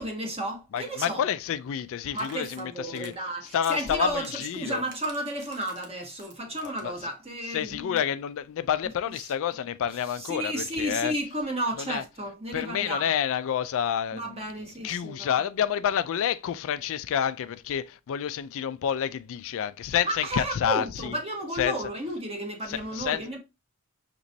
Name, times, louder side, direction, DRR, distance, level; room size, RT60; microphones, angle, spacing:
voice 1, 0.0-1.2 2.1-8.0 10.2-13.1 14.1-15.3 20.0-23.4, right 1 dB, 25° right, 1.2 m, -33 dB
voice 2, 0.7-4.8 6.6-7.1 7.5-11.1 11.8-12.0 12.5-14.4 14.8-21.2 21.5-21.8 22.7-23.3, left 9 dB, 65° left, 0.3 m, -29 dB
sound 1, 2.1-3.2 3.5-7.0 7.3-7.4 7.6-7.7 7.9-8.1, right 4 dB, 50° right, 1.0 m, -50 dB
6.1 x 3.0 x 2.6 m
head